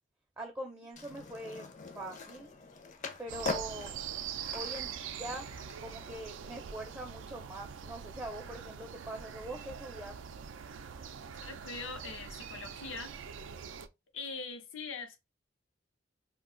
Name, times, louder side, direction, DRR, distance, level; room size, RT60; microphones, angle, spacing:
voice 1, 0.4-1.7 1.9-2.5 3.2-3.9 4.5-5.5 5.8-10.2, right 1 dB, 15° right, 0.4 m, -43 dB
Skateboard, 0.9-6.2, left 3 dB, 40° left, 0.5 m, -43 dB
sound 1, 3.3-13.9, right 8 dB, 80° right, 0.4 m, -43 dB
voice 2, 11.4-13.1 14.1-15.2, left 4 dB, 90° left, 0.8 m, -42 dB
2.4 x 2.2 x 3.6 m
head